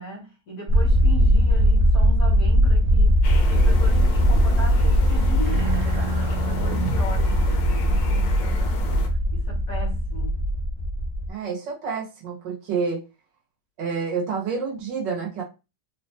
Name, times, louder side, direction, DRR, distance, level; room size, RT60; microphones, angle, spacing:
voice 1, 0.0-3.2 3.5-10.4, left 1 dB, 60° left, 1.5 m, -37 dB
sound 1, 0.7-11.3, equal, 55° right, 1.0 m, -20 dB
sound 2, 3.2-9.1, left 3 dB, 90° left, 1.4 m, -35 dB
voice 2, 11.3-13.0 13.8-15.4, right 5 dB, 90° right, 1.6 m, -28 dB
3.8 x 2.2 x 2.8 m
omnidirectional pair, 1.9 m